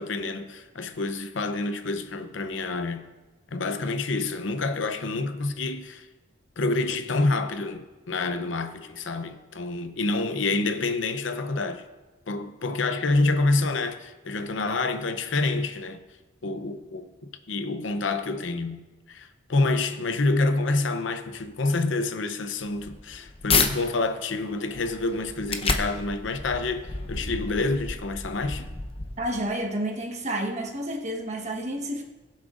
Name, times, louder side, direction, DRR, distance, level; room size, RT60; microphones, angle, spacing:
voice 1, 0.0-3.1 3.5-6.1 6.6-11.9 12.3-16.0 16.4-17.1 17.5-18.8 19.1-28.7, left 3 dB, 80° left, 0.7 m, -27 dB
sound 1, 22.6-23.7 24.2-29.5, left 4 dB, 30° left, 0.8 m, -30 dB
voice 2, 29.2-32.0, right 1 dB, 40° right, 1.3 m, -30 dB
21.0 x 7.3 x 2.5 m
head